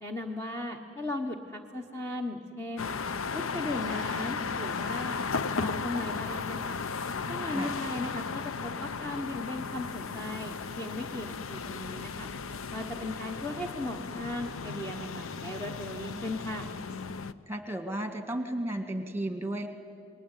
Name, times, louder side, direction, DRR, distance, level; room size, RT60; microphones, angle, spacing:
voice 1, 0.0-2.9 3.3-5.2 5.6-6.8 7.3-12.3 12.7-16.7, left 1 dB, 10° left, 2 dB, 1.1 m, -37 dB
sound 1, 2.8-17.3, left 5 dB, 75° left, 0.7 m, -35 dB
voice 2, 17.5-19.7, right 1 dB, 10° right, 7 dB, 1.7 m, -34 dB
28.5 x 20.5 x 9.1 m, 2.3 s
head